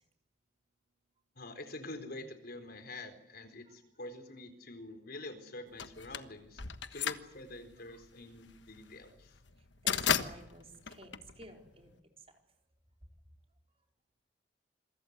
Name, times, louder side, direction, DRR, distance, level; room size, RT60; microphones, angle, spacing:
voice 1, 1.4-6.6 6.9-9.3, left 2 dB, 60° left, 8 dB, 4.1 m, -46 dB
sound 1, 5.8-11.9, left 7 dB, 85° left, 1.3 m, -35 dB
voice 2, 9.8-12.0, right 1 dB, 35° right, 3 dB, 4.3 m, -54 dB
27.0 x 23.5 x 8.1 m, 0.82 s
head